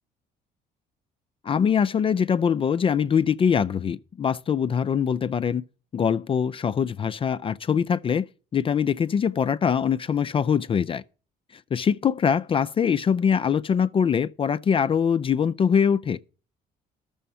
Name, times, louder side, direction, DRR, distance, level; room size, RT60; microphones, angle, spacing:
voice 1, 1.4-5.6 5.9-8.3 8.5-11.0 11.5-16.2, left 7 dB, 30° left, 0.4 m, -23 dB
12.5 x 7.0 x 5.4 m
cardioid pair, 110°, 17 cm